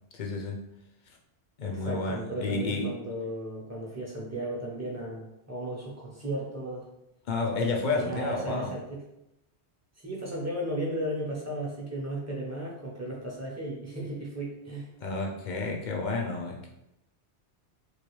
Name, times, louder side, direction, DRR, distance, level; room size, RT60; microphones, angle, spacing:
voice 1, 0.1-0.7 1.6-3.0 7.3-8.7 15.0-16.7, left 3 dB, 55° left, 0 dB, 0.6 m, -31 dB
voice 2, 1.6-6.9 7.8-9.0 10.0-14.9, right 1 dB, 20° right, -4 dB, 0.6 m, -35 dB
3.1 x 2.4 x 3.0 m, 0.86 s
omnidirectional pair, 1.1 m